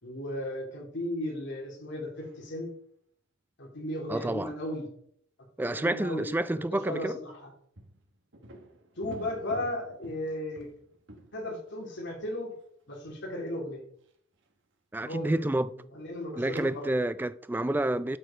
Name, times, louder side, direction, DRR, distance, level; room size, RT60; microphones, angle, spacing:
voice 1, 0.0-2.7 3.6-4.9 5.7-7.5 9.0-10.7 11.3-12.5 12.9-13.8 15.0-15.7 15.9-16.9, left 1 dB, 60° left, 3.3 m, -35 dB
sound 1, 2.2-2.5 7.8-12.6 13.3-13.4 14.1-14.5 15.2-15.4 16.5-17.0, right 1 dB, 60° right, 1.4 m, -50 dB
voice 2, 4.1-4.5 5.6-7.2 14.9-15.7 16.4-18.2, right 1 dB, 10° right, 0.3 m, -29 dB
12.5 x 4.7 x 5.1 m
head